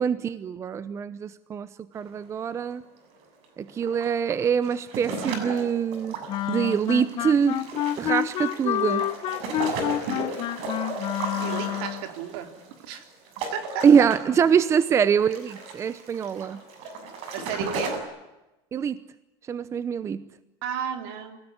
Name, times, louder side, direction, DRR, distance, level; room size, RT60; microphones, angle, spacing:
voice 1, 0.0-1.7 1.9-2.8 3.6-6.2 6.5-9.1 13.8-16.6 18.7-19.0 19.5-20.2, right 7 dB, 20° right, 15 dB, 0.8 m, -24 dB
sound 1, 2.0-2.1 2.4-2.5 3.4-18.0, right 3 dB, 55° right, 6.8 m, -35 dB
Wind instrument woodwind instrument, 6.3-12.0, left 13 dB, 40° left, 1.2 m, -28 dB
voice 2, 11.4-12.5 12.8-13.0 13.5-13.9 17.3-18.0 20.6-21.4, right 8 dB, 70° right, 7 dB, 3.8 m, -33 dB
27.5 x 17.5 x 9.7 m, 1.0 s
cardioid pair, 155°, 13 cm